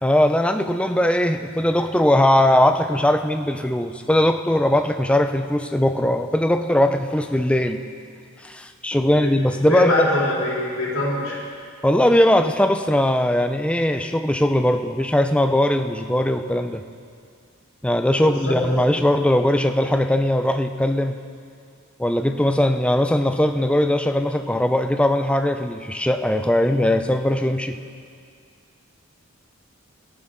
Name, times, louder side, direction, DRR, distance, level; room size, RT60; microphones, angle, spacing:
voice 1, 0.0-7.8 8.4-10.0 11.8-16.8 17.8-21.2 22.0-27.8, left 1 dB, 5° left, 7 dB, 0.5 m, -20 dB
voice 2, 9.7-11.4 18.1-18.8, left 1 dB, 75° left, -5 dB, 3.8 m, -23 dB
18.0 x 14.0 x 3.8 m, 2.2 s
head